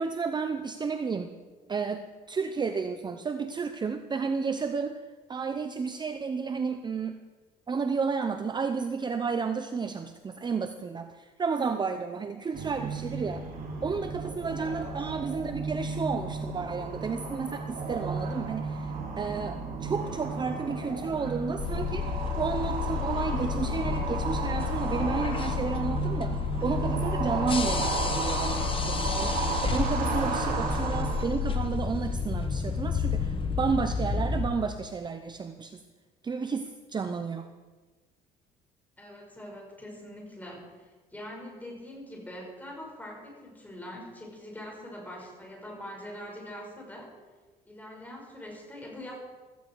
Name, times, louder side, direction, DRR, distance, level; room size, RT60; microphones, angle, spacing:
voice 1, 0.0-1.4 1.7-5.0 5.3-7.2 7.7-13.4 13.8-35.8 36.2-37.5, right 5 dB, 25° right, 8 dB, 0.8 m, -32 dB
sound 1, 12.5-31.2, right 4 dB, 55° right, 3.1 m, -33 dB
voice 2, 14.6-15.1 39.0-47.1 47.7-49.1, left 1 dB, 10° left, -1 dB, 5.7 m, -43 dB
sound 2, 21.6-34.5, left 6 dB, 30° left, 1.3 m, -30 dB
16.5 x 14.5 x 4.7 m, 1.3 s
cardioid pair, 110°, 17 cm